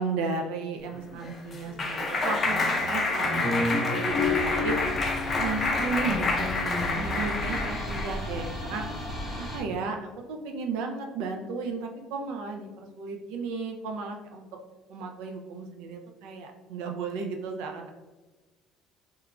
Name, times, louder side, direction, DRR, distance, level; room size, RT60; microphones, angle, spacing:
voice 1, 0.0-4.2 4.4-4.8 5.3-6.5 6.8-8.8 9.4-14.5 14.9-17.9, right 4 dB, 90° right, 3 dB, 0.3 m, -34 dB
Clapping, 0.9-8.2, left 3 dB, 25° left, 0.4 m, -27 dB
voice 2, 3.7-4.0 6.0-7.1, left 3 dB, 80° left, 0 dB, 0.5 m, -37 dB
sound 1, 4.1-9.6, equal, 5° left, 0.7 m, -36 dB
2.9 x 2.2 x 2.4 m, 1.2 s
cardioid pair, 175°, 0 cm